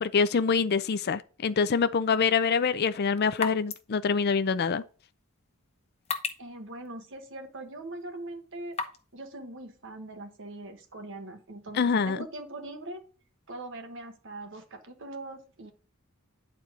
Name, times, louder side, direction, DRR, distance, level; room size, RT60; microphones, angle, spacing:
voice 1, 0.0-4.8 11.8-12.2, left 5 dB, 50° left, 0.5 m, -25 dB
sound 1, 2.3-9.1, left 5 dB, 30° left, 0.9 m, -41 dB
voice 2, 6.4-8.8 9.1-13.0 13.5-15.7, right 2 dB, 60° right, 1.4 m, -41 dB
9.6 x 4.5 x 3.7 m
head